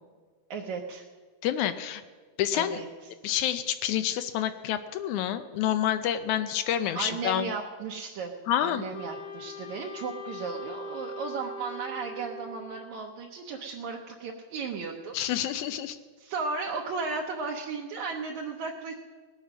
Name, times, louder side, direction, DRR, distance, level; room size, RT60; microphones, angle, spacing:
voice 1, 0.5-1.1 2.5-2.9 7.0-8.3 8.6-15.1 16.2-18.9, right 4 dB, 70° right, -1 dB, 2.2 m, -35 dB
voice 2, 1.4-2.0 2.4-2.8 3.2-7.5 8.5-8.8 15.1-16.0, left 11 dB, 80° left, 11 dB, 1.9 m, -28 dB
Wind instrument woodwind instrument, 8.9-12.9, left 1 dB, 45° left, 1.3 m, -41 dB
19.0 x 8.3 x 6.0 m, 1.5 s
omnidirectional pair, 3.6 m